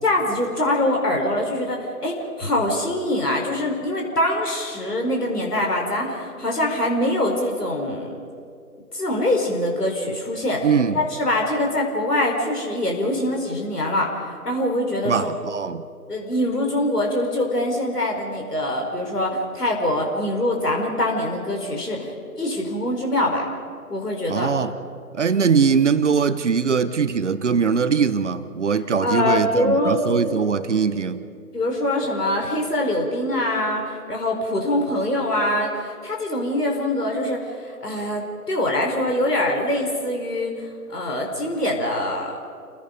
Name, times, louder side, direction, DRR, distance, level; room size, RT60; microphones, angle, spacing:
voice 1, 0.0-8.1 8.9-15.3 16.1-23.5 23.9-24.5 25.3-25.5 29.0-30.0 31.5-42.4, left 1 dB, 80° left, 4.7 m, -24 dB
voice 2, 10.6-11.0 15.0-15.8 24.3-24.7 25.1-31.2, right 6 dB, 50° right, 1.1 m, -21 dB
30.0 x 16.5 x 5.2 m
figure-of-eight pair, 150°, 46 cm